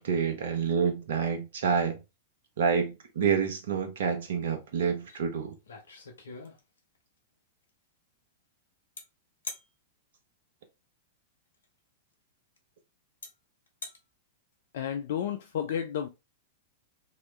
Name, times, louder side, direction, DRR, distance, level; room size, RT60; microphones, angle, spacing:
voice 1, 0.0-2.0 2.6-5.6, right 6 dB, 65° right, 0.8 m, -28 dB
sound 1, 5.1-5.2 5.5-7.0 9.0-9.1 9.4-9.7 11.5-11.6 12.6-12.7 13.2-13.3 13.7-14.0, left 3 dB, 75° left, 0.9 m, -42 dB
voice 2, 14.7-16.1, left 8 dB, 60° left, 0.4 m, -31 dB
3.0 x 3.0 x 3.1 m
figure-of-eight pair, 100°, 0 cm